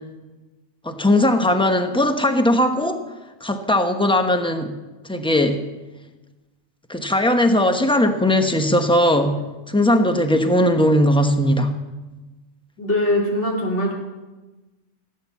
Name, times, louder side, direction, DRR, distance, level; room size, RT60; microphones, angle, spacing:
voice 1, 0.8-3.0 3.4-4.7 5.1-5.6 6.9-9.4 9.7-11.8, left 1 dB, 5° left, 6 dB, 1.0 m, -18 dB
voice 2, 12.8-13.9, left 1 dB, 90° left, -1 dB, 3.3 m, -21 dB
17.5 x 8.6 x 7.2 m, 1.2 s
omnidirectional pair, 1.2 m